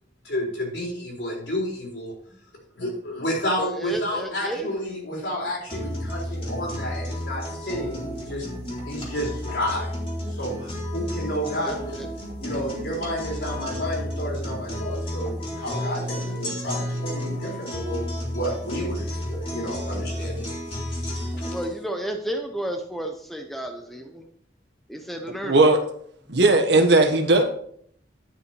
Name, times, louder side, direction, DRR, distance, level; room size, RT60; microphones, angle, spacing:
voice 1, 0.2-2.1 2.8-8.5 8.9-9.9 10.3-12.0 12.4-20.5, equal, 70° left, -2 dB, 4.2 m, -30 dB
voice 2, 3.6-4.7 11.6-12.1 21.4-24.2 24.9-25.6, right 1 dB, ahead, 4 dB, 0.7 m, -32 dB
sound 1, 5.7-21.7, equal, 30° left, 2.7 m, -32 dB
voice 3, 25.4-25.8 26.3-27.4, right 2 dB, 70° right, 5 dB, 1.4 m, -17 dB
10.5 x 5.8 x 4.6 m, 0.63 s
head